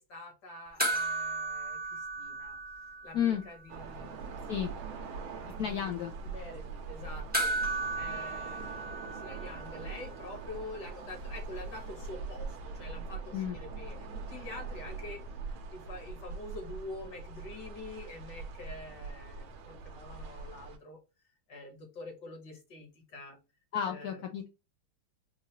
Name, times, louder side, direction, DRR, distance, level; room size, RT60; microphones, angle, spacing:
voice 1, 0.0-2.6 3.0-15.2 15.7-21.0 21.5-23.4 23.9-24.2, left 2 dB, 60° left, 3 dB, 1.7 m, -47 dB
sound 1, 0.8-3.5 3.7-3.8 7.3-9.9 12.1-12.2, right 2 dB, 15° right, 0.3 m, -34 dB
sound 2, 3.7-20.8, right 4 dB, 85° right, 1.5 m, -42 dB
voice 2, 5.6-6.1 13.3-13.6 23.7-24.5, left 9 dB, 90° left, 4 dB, 0.8 m, -32 dB
4.6 x 2.4 x 2.8 m, 0.28 s
omnidirectional pair, 2.2 m